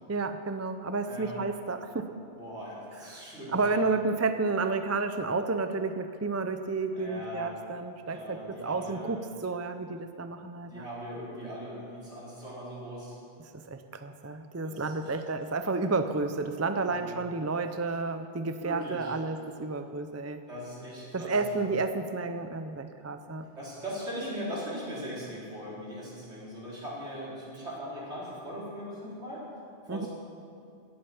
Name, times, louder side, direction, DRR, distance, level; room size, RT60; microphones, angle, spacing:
voice 1, 0.1-2.1 3.1-3.2 3.5-10.9 13.5-20.4 21.1-23.4 29.9-30.1, right 3 dB, 20° right, 8 dB, 0.5 m, -31 dB
voice 2, 2.3-3.8 6.9-7.6 8.1-9.1 10.7-13.2 14.6-15.1 16.9-17.2 18.6-19.1 20.5-21.6 23.6-29.4 29.8-30.1, equal, 75° right, -6 dB, 4.4 m, -40 dB
17.0 x 9.1 x 7.0 m, 2.4 s
omnidirectional pair, 1.2 m